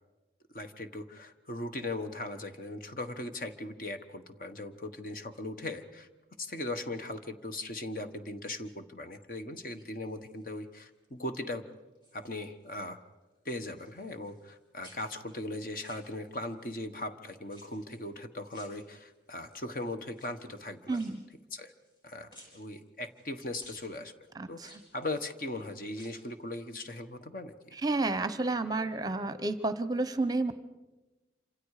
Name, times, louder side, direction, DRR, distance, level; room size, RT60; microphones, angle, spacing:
voice 1, 0.5-6.1 6.4-11.7 12.1-13.0 13.4-21.0 21.5-21.7 22.0-24.1 24.5-27.8, left 2 dB, 50° left, 7 dB, 1.3 m, -39 dB
sound 1, 9.7-10.5 11.0-11.4 11.7-12.8 13.0-14.6 14.8-16.6 17.5-18.1 18.5-19.4 20.1-22.0 22.3-23.3 23.6-23.9 24.6-25.4 25.8-26.4 26.7-26.8, equal, 25° left, 5.5 m, -58 dB
voice 2, 20.9-21.2 24.3-24.7 27.7-30.5, right 2 dB, 20° right, 12 dB, 0.8 m, -31 dB
27.0 x 26.5 x 4.9 m, 1.1 s
head